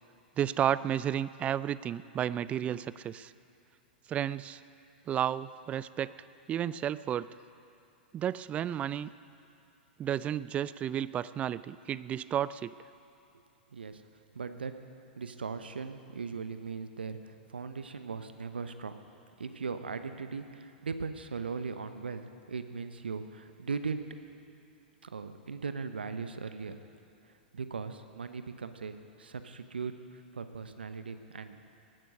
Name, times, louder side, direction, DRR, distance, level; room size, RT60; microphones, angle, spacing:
voice 1, 0.4-3.3 4.1-4.6 5.1-6.1 6.5-7.3 8.1-9.1 10.0-12.7, right 10 dB, 25° right, 17 dB, 0.3 m, -32 dB
voice 2, 13.7-14.0 14.3-14.7 15.2-18.9 19.4-24.1 25.0-26.8 27.5-31.6, right 5 dB, 75° right, 10 dB, 0.9 m, -39 dB
18.5 x 9.4 x 6.6 m, 2.8 s
figure-of-eight pair, 100°, 6 cm